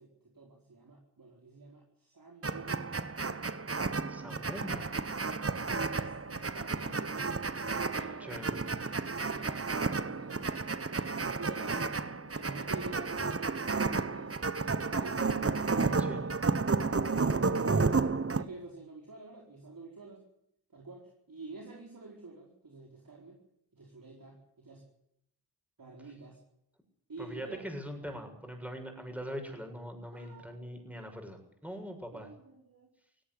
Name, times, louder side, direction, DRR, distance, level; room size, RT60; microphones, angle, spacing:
voice 1, 0.0-3.0 5.2-5.4 5.9-7.2 7.9-8.7 9.2-11.8 12.3-15.2 15.7-20.2 20.7-23.4 23.7-24.8 25.8-26.4 27.1-27.6 30.1-30.6 31.6-31.7 32.1-32.9, right 3 dB, 55° right, 0 dB, 4.6 m, -49 dB
sound 1, 2.4-18.4, right 4 dB, 35° right, 1.4 m, -32 dB
voice 2, 4.1-5.0 8.2-8.5 11.7-12.2 16.0-16.3 27.2-32.3, equal, 5° right, 4 dB, 7.1 m, -42 dB
17.5 x 17.0 x 9.8 m, 0.76 s
cardioid pair, 60°, 41 cm